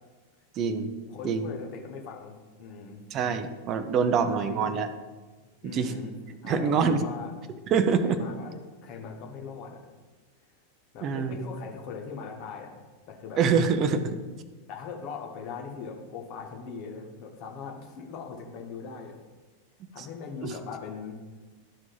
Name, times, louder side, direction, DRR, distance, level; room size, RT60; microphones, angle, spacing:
voice 1, 0.6-0.9 1.2-1.5 3.1-4.9 5.6-5.9 6.4-7.1 7.7-8.2 11.0-11.5 13.4-14.2 20.0-20.1 20.4-20.5, right 6 dB, 35° right, 10 dB, 0.7 m, -25 dB
voice 2, 1.1-3.0 4.0-4.6 5.6-7.4 8.0-9.8 10.9-12.8 13.1-13.4 14.7-19.2 19.9-21.2, left 5 dB, 40° left, 1 dB, 1.6 m, -40 dB
12.5 x 4.8 x 4.0 m, 1.3 s
figure-of-eight pair, 90°, 0 cm